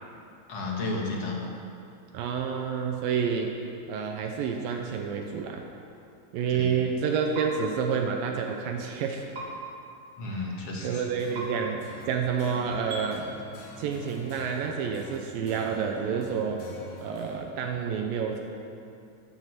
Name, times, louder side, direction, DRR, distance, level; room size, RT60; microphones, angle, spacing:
voice 1, 0.5-1.4 6.5-6.8 10.2-11.1, left 2 dB, 45° left, -2 dB, 2.8 m, -32 dB
voice 2, 2.1-3.5 3.9-5.6 6.3-9.2 10.8-13.3 13.8-16.6 17.0-18.4, right 6 dB, 80° right, 2 dB, 2.7 m, -29 dB
sound 1, 7.3-7.5 9.3-9.5 11.3-11.5 12.9-13.0, right 2 dB, 60° right, 5.0 m, -36 dB
sound 2, 11.2-17.3, equal, 80° left, 4.6 m, -46 dB
13.5 x 12.0 x 6.7 m, 2.6 s
omnidirectional pair, 4.1 m